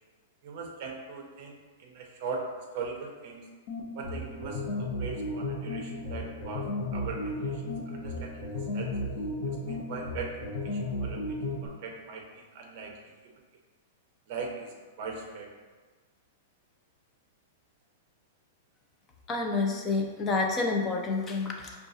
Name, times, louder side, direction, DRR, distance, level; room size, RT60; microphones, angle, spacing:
voice 1, 0.4-3.5 3.9-8.4 8.7-8.9 9.7-13.1 14.3-15.5, right 4 dB, 40° right, 1 dB, 0.6 m, -40 dB
sound 1, 3.7-11.7, left 1 dB, 45° left, 0.8 m, -34 dB
voice 2, 19.3-21.7, left 3 dB, 15° left, 1 dB, 0.4 m, -28 dB
5.8 x 2.3 x 2.7 m, 1.4 s
supercardioid pair, 175°, 0 cm